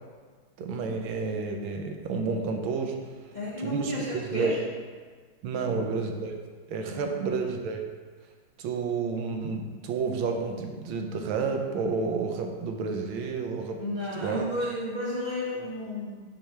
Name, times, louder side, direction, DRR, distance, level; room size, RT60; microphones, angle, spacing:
voice 1, 0.6-3.0 3.6-4.6 5.4-6.4 6.7-7.8 8.6-13.8 14.2-14.5, right 4 dB, 80° right, 3 dB, 1.5 m, -30 dB
voice 2, 3.3-4.6 5.5-5.8 6.9-7.1 13.8-16.2, equal, 30° left, -8 dB, 0.9 m, -32 dB
6.6 x 3.3 x 5.8 m, 1.5 s
omnidirectional pair, 2.2 m